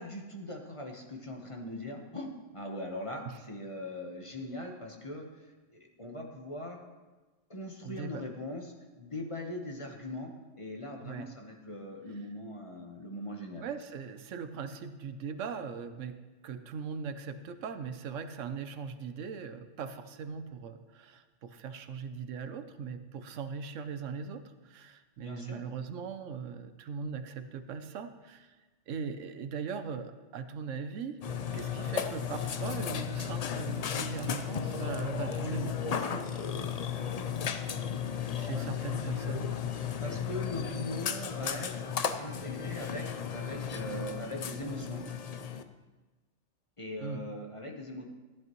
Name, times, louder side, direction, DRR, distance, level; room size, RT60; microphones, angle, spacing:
voice 1, 0.0-5.3 5.7-6.8 7.5-13.7 25.2-25.6 38.5-38.7 40.0-45.0 46.8-48.0, left 1 dB, 25° left, 1 dB, 1.1 m, -40 dB
voice 2, 7.8-8.2 11.0-11.3 13.6-16.2 16.4-28.5 28.9-31.2 31.5-36.3 38.3-39.6 47.0-47.3, right 5 dB, 75° right, 10 dB, 1.0 m, -40 dB
Burping eructation, 31.2-45.6, left 7 dB, 65° left, 0.4 m, -35 dB
15.0 x 11.0 x 3.1 m, 1.2 s
omnidirectional pair, 1.3 m